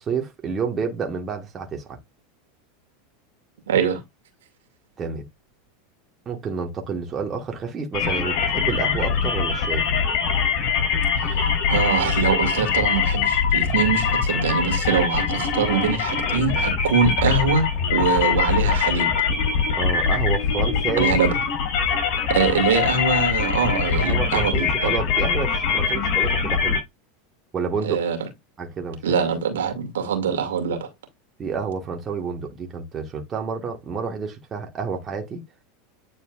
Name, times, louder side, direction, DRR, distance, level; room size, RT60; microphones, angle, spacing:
voice 1, 0.0-2.0 5.0-5.2 6.2-9.9 19.8-21.2 24.0-26.8 27.5-28.0 28.6-29.1 31.4-35.4, right 5 dB, 30° right, 1.6 m, -29 dB
voice 2, 3.7-4.0 11.2-19.1 21.0-21.3 22.3-24.9 27.8-28.2 29.0-30.9, right 6 dB, 70° right, 2.2 m, -23 dB
sound 1, 7.9-26.8, left 6 dB, 55° left, 3.4 m, -22 dB
9.3 x 4.3 x 2.4 m
figure-of-eight pair, 85°, 0 cm